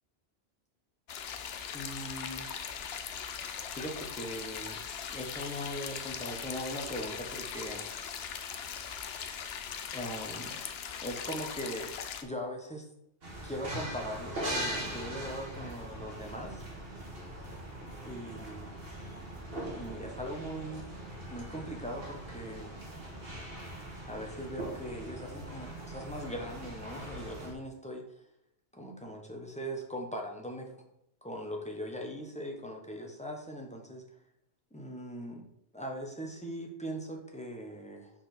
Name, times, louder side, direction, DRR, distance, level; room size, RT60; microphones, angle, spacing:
sound 1, 1.1-12.2, left 7 dB, 70° left, 0.9 m, -40 dB
voice 1, 1.7-2.5 3.4-4.8 5.1-7.8 9.9-10.6 11.0-11.9 12.2-12.9 13.4-16.6 18.0-18.8 19.7-20.9 21.3-22.7 24.1-28.2 28.7-30.7 31.2-34.0 34.7-35.5 35.7-38.1, equal, 5° left, 1 dB, 1.0 m, -40 dB
sound 2, 13.2-27.5, right 1 dB, 60° right, 1.8 m, -41 dB
5.5 x 4.3 x 5.9 m, 0.78 s
omnidirectional pair, 1.1 m